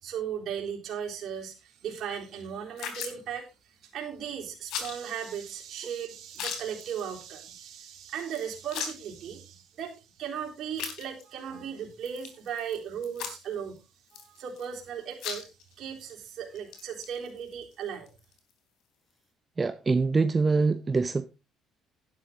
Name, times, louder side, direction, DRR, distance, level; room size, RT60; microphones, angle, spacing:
voice 1, 0.0-3.5 3.8-13.8 14.1-15.4 15.8-18.1, right 8 dB, 60° right, 3.8 m, -37 dB
sound 1, 1.9-2.0 2.8-3.2 4.7-5.0 5.4-5.5 5.7-5.8 6.3-7.0 7.3-7.5 7.8-7.9 8.3-9.2 9.8-9.9 10.8-11.4 12.0-12.8 13.0-13.6 14.1-14.8 15.1-15.7 16.1-16.2 16.5-18.5, left 7 dB, 75° left, 3.3 m, -38 dB
voice 2, 19.6-21.3, right 4 dB, 25° right, 0.7 m, -24 dB
11.0 x 11.0 x 3.8 m
cardioid pair, 100°, 0 cm